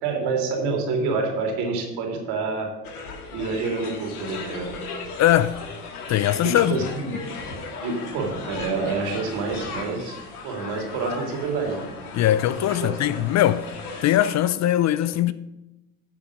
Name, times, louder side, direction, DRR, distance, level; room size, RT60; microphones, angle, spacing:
voice 1, 0.0-2.7 3.3-4.7 6.4-7.2 7.8-10.2 10.4-11.9 12.8-13.2, right 4 dB, 60° right, 3.0 m, -27 dB
sound 1, 2.8-14.3, left 4 dB, 85° left, 2.1 m, -36 dB
voice 2, 5.2-5.6 6.1-6.8 12.1-13.7 14.0-15.3, left 12 dB, 40° left, 0.5 m, -20 dB
10.0 x 5.9 x 6.5 m
hypercardioid pair, 85°, 44 cm